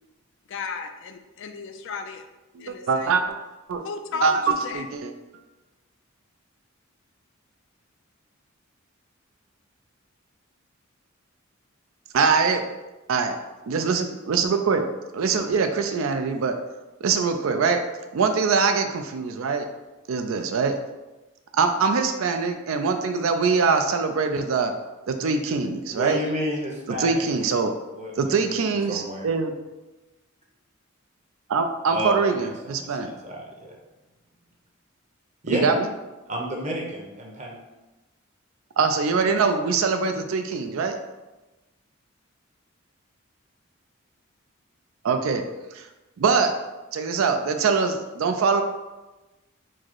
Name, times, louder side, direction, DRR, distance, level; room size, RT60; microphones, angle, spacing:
voice 1, 0.5-2.3 2.6-3.2 3.8-4.9, left 5 dB, 60° left, 7 dB, 0.3 m, -35 dB
voice 2, 2.5-3.4 3.7-3.8 4.2-4.4 4.7-5.1 12.1-12.6 13.1-13.3 13.7-14.9 15.1-16.5 17.0-17.8 18.1-19.7 20.1-20.8 21.6-24.7 25.1-26.2 27.0-27.7 28.2-29.5 31.5-33.1 35.5-35.9 38.8-41.0 45.0-45.4 45.7-45.9 46.2-46.5 46.9-48.6, right 5 dB, 70° right, 6 dB, 0.4 m, -23 dB
voice 3, 25.9-27.6 27.9-29.3 31.9-33.7 35.4-35.6 36.3-37.6, equal, 35° right, -1 dB, 0.8 m, -31 dB
4.6 x 2.0 x 4.5 m, 1.1 s
head